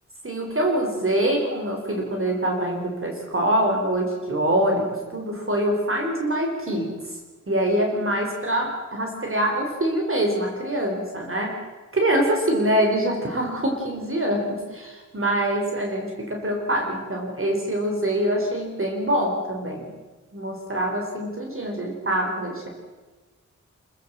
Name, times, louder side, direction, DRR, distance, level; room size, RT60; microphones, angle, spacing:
voice 1, 0.2-6.9 7.5-11.6 11.9-19.9 20.3-22.7, right 1 dB, 45° right, 2 dB, 4.2 m, -24 dB
26.0 x 15.0 x 7.5 m, 1.3 s
wide cardioid pair, 75°, 30 cm